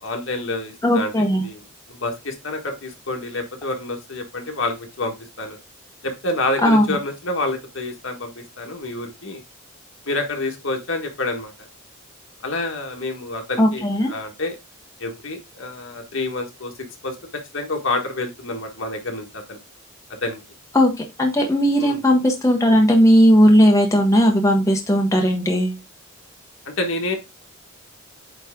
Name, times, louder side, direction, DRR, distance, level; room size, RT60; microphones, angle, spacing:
voice 1, 0.0-1.6 1.9-5.6 6.0-9.4 10.0-11.5 12.4-14.6 15.0-16.7 17.0-17.1 17.5-19.6 20.2-20.4 21.8-22.0 26.6-27.2, left 2 dB, 70° left, 4 dB, 1.5 m, -28 dB
voice 2, 0.8-1.5 6.6-6.8 13.6-14.1 20.7-25.8, equal, 15° left, 1 dB, 1.1 m, -16 dB
9.0 x 3.3 x 3.6 m, 0.24 s
head